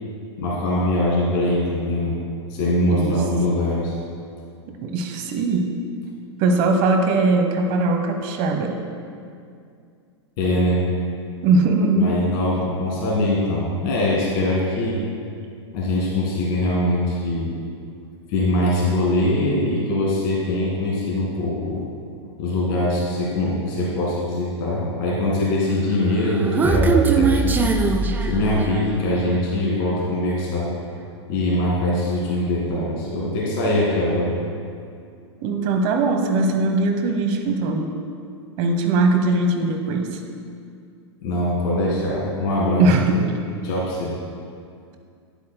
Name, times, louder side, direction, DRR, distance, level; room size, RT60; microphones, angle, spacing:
voice 1, 0.4-2.2 2.5-3.9 10.4-10.8 12.0-15.0 15.7-17.5 18.3-21.8 22.4-27.6 28.3-30.7 31.3-34.4 41.2-43.2 43.6-44.1, left 1 dB, 50° left, -4 dB, 1.9 m, -22 dB
voice 2, 2.8-3.2 4.7-5.7 6.4-8.8 11.4-12.2 35.4-37.9 38.6-40.2 42.8-43.2, right 3 dB, 45° right, 5 dB, 0.9 m, -20 dB
Human voice, 26.0-29.0, right 4 dB, 10° right, 0.4 m, -20 dB
9.7 x 8.0 x 2.2 m, 2.3 s
hypercardioid pair, 105°, 15 cm